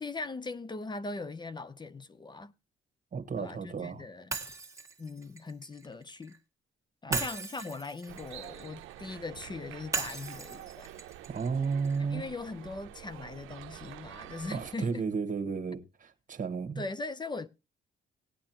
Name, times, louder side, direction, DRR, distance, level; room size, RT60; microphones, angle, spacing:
voice 1, 0.0-2.5 3.4-4.4 5.0-6.4 7.0-10.9 12.1-15.0 16.8-17.5, left 3 dB, 20° left, 0.6 m, -40 dB
voice 2, 3.1-4.0 7.1-7.2 11.3-12.2 14.5-16.8, right 5 dB, 40° right, 1.4 m, -33 dB
Shatter, 4.3-6.4 7.1-9.2 9.9-12.0, right 4 dB, 15° right, 1.7 m, -38 dB
sound 1, 8.1-14.8, right 13 dB, 90° right, 0.6 m, -48 dB
18.5 x 8.7 x 2.9 m
cardioid pair, 90°, 20 cm